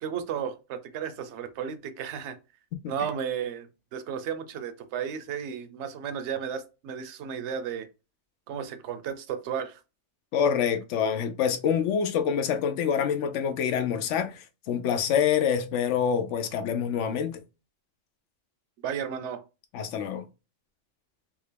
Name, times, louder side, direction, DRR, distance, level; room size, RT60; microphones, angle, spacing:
voice 1, 0.0-2.4 2.9-7.9 8.5-9.8 18.8-19.4, right 8 dB, 70° right, 0.9 m, -34 dB
voice 2, 10.3-17.4 19.7-20.2, left 7 dB, 80° left, 0.9 m, -26 dB
3.6 x 2.4 x 3.3 m
omnidirectional pair, 1.2 m